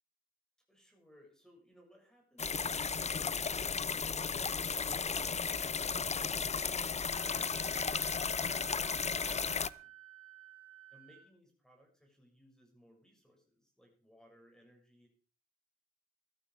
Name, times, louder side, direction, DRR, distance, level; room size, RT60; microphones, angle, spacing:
voice 1, 0.7-4.7 10.9-15.1, equal, ahead, 1 dB, 6.5 m, -64 dB
sound 1, 2.4-9.7, left 5 dB, 20° left, 0.6 m, -34 dB
Wind instrument woodwind instrument, 7.1-11.3, right 14 dB, 45° right, 6.7 m, -55 dB
15.0 x 13.0 x 4.8 m, 0.40 s
cardioid pair, 90°, 30 cm